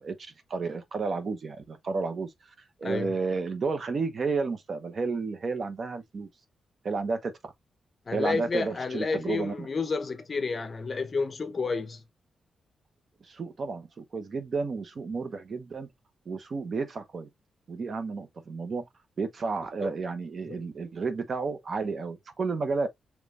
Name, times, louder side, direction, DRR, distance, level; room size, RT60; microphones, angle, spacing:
voice 1, 0.0-2.3 2.8-6.3 6.8-7.3 8.1-9.7 13.2-15.9 16.3-17.3 17.7-18.8 19.2-22.9, right 4 dB, 45° right, 0.9 m, -32 dB
voice 2, 2.8-3.1 8.1-12.0 19.8-19.9 20.5-20.6, left 4 dB, 35° left, 0.8 m, -30 dB
5.2 x 3.3 x 2.5 m
wide cardioid pair, 125°, 0 cm